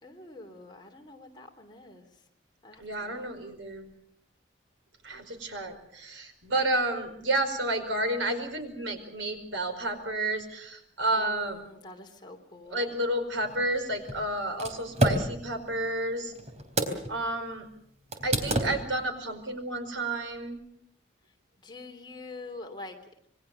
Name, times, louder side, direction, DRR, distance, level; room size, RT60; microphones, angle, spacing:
voice 1, 0.0-2.1 2.6-3.3 11.2-12.9 21.6-23.0, left 2 dB, 25° left, 3 dB, 3.1 m, -45 dB
voice 2, 2.8-3.9 5.0-11.6 12.7-16.3 17.1-17.7 18.2-20.6, right 1 dB, 90° right, 7 dB, 5.0 m, -31 dB
sound 1, 13.4-17.2 17.5-17.6 18.1-19.1, right 1 dB, 35° right, 3.7 m, -30 dB
26.5 x 22.0 x 6.8 m, 0.73 s
head